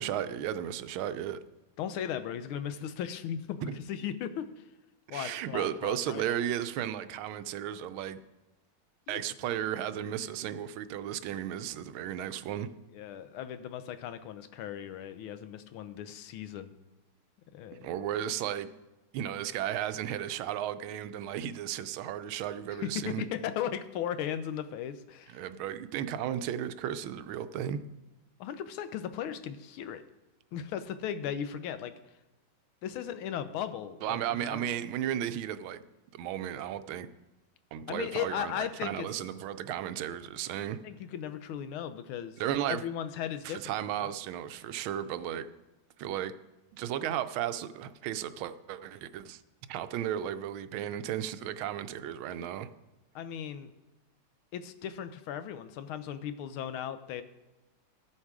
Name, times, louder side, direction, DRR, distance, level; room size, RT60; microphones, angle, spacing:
voice 1, 0.0-1.4 3.6-3.8 5.1-8.2 9.1-12.7 17.8-18.7 19.1-23.2 25.3-27.8 34.0-35.8 36.1-37.1 37.7-40.8 42.4-42.8 43.4-45.5 46.0-46.3 46.7-49.4 49.7-52.7, right 10 dB, 80° right, 12 dB, 1.4 m, -34 dB
voice 2, 1.8-4.6 5.1-6.4 9.1-9.2 11.5-11.6 12.9-16.7 17.5-17.9 22.7-25.4 28.4-30.0 30.5-31.9 32.8-34.8 37.9-39.1 40.8-42.4 42.7-44.1 53.1-53.7 54.5-57.2, left 9 dB, 85° left, 11 dB, 1.5 m, -37 dB
14.5 x 7.2 x 4.8 m, 1.0 s
omnidirectional pair, 2.3 m